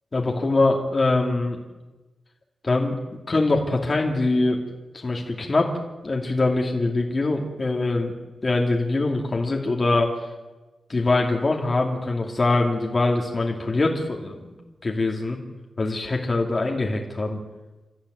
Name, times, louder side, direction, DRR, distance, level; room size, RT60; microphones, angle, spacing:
voice 1, 0.1-1.6 2.6-3.0 3.3-4.6 4.9-5.7 6.0-8.1 8.4-10.2 10.9-14.5 14.8-15.4 15.8-17.4, left 2 dB, 25° left, 0 dB, 2.6 m, -23 dB
29.0 x 14.5 x 9.4 m, 1.2 s
wide cardioid pair, 170°, 0 cm